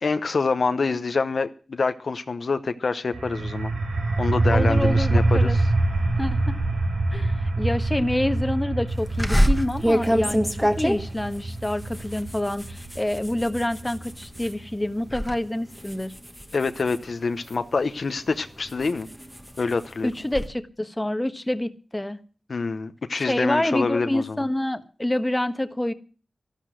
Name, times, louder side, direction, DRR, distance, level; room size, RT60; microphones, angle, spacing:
voice 1, 0.0-3.7 4.2-5.6 16.5-19.1 19.6-20.1 22.5-24.4, left 4 dB, 60° left, 0.8 m, -26 dB
sound 1, 3.1-14.6, right 2 dB, 85° right, 7.7 m, -25 dB
voice 2, 4.5-5.6 6.2-6.6 7.1-16.1 20.0-22.2 23.3-25.9, left 1 dB, 15° left, 1.3 m, -27 dB
sound 2, 9.2-14.6 14.9-15.3 15.7-17.7 18.3-20.5, equal, ahead, 1.4 m, -26 dB
13.0 x 12.0 x 6.3 m
wide cardioid pair, 90°, 0 cm